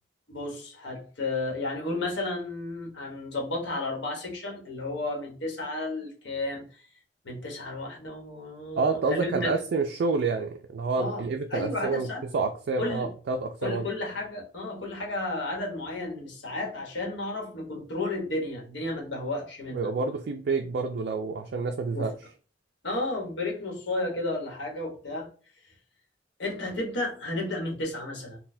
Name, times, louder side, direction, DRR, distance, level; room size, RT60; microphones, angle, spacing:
voice 1, 0.3-6.9 7.2-9.5 11.0-12.2 12.8-13.1 13.6-19.9 21.9-22.1 22.8-25.3 26.4-28.4, left 2 dB, 80° left, 1.0 m, -33 dB
voice 2, 8.8-13.9 19.7-22.1, right 4 dB, 60° right, 0.3 m, -28 dB
3.9 x 2.2 x 2.6 m
head